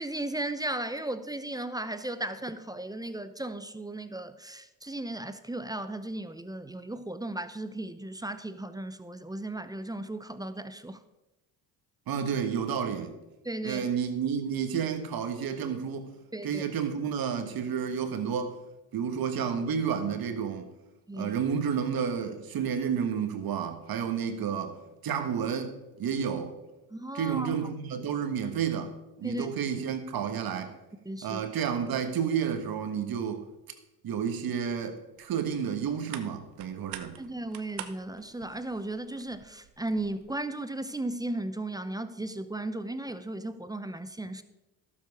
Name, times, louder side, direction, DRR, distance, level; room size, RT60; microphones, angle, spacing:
voice 1, 0.0-11.0 13.4-13.8 16.3-16.6 21.1-21.3 26.9-27.5 29.2-29.5 31.1-31.4 37.2-44.4, right 1 dB, 10° right, 0.7 m, -35 dB
voice 2, 12.1-13.1 13.6-16.1 16.4-18.6 18.9-20.7 21.1-25.7 26.0-26.5 27.1-30.7 31.2-33.4 34.0-37.2, right 7 dB, 55° right, 1.5 m, -31 dB
sound 1, 35.2-40.3, right 11 dB, 85° right, 0.8 m, -47 dB
12.0 x 7.5 x 4.8 m
supercardioid pair, 70°, 44 cm